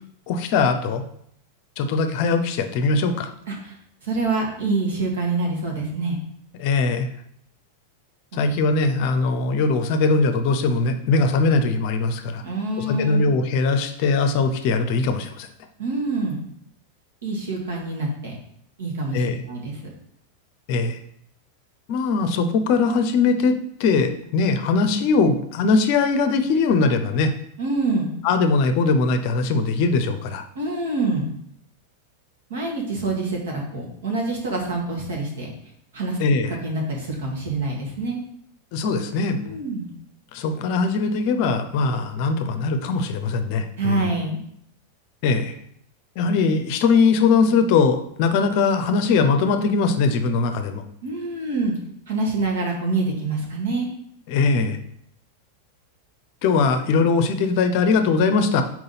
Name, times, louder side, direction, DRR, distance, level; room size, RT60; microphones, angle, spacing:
voice 1, 0.3-1.0 1.8-3.3 6.6-7.1 8.3-12.4 12.8-15.5 19.1-19.4 20.7-21.0 21.9-23.5 23.8-27.3 28.2-30.4 36.2-36.5 38.7-39.6 40.3-44.1 45.2-45.6 46.2-50.8 54.3-54.8 56.4-58.6, left 4 dB, 45° left, 8 dB, 0.6 m, -21 dB
voice 2, 4.0-6.2 8.3-8.4 12.4-13.3 15.8-16.4 17.2-18.3 18.8-19.8 27.6-28.1 30.6-31.3 32.5-35.5 35.9-36.2 36.5-38.2 39.4-39.9 43.8-44.4 51.0-51.7 52.1-53.9, right 3 dB, 60° right, 0 dB, 1.7 m, -26 dB
4.6 x 3.9 x 5.6 m, 0.70 s
figure-of-eight pair, 90°, 0 cm